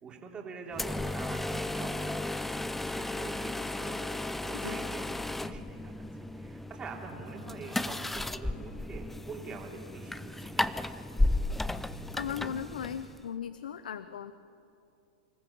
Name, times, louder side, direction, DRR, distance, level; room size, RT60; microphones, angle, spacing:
voice 1, 0.0-4.0 4.4-5.9 6.3-10.9, right 4 dB, 20° right, 1 dB, 2.9 m, -45 dB
sound 1, 0.7-13.3, left 2 dB, 5° left, 0.4 m, -34 dB
voice 2, 11.8-14.3, left 8 dB, 85° left, 13 dB, 0.6 m, -38 dB
26.0 x 14.5 x 7.0 m, 2.7 s
hypercardioid pair, 130°, 4 cm